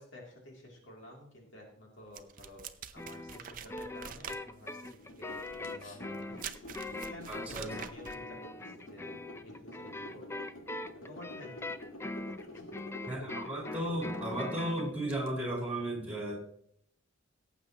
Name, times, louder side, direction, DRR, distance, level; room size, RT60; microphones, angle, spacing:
voice 1, 0.0-6.5 6.9-9.2 9.4-10.5 10.9-11.7 12.5-12.7, left 1 dB, 65° left, -1 dB, 2.9 m, -51 dB
sound 1, 2.1-8.3, right 8 dB, 45° right, 0.6 m, -46 dB
sound 2, 3.0-14.9, left 2 dB, 15° left, 0.4 m, -42 dB
sound 3, 5.0-15.3, left 1 dB, 90° left, 1.7 m, -48 dB
voice 2, 7.3-7.7 13.1-16.3, right 1 dB, 5° right, -1 dB, 4.7 m, -35 dB
18.0 x 8.1 x 2.9 m, 0.67 s
head